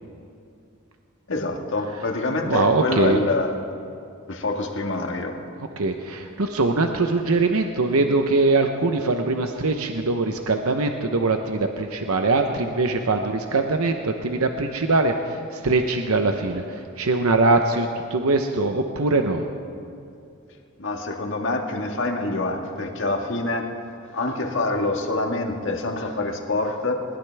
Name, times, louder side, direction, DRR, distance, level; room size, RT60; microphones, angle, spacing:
voice 1, 1.3-3.5 4.3-5.4 20.8-23.7 24.0-27.0, left 2 dB, 55° left, 2 dB, 1.6 m, -26 dB
voice 2, 2.4-3.2 5.6-19.4, right 3 dB, 80° right, 5 dB, 0.9 m, -22 dB
21.0 x 20.0 x 3.5 m, 2.6 s
head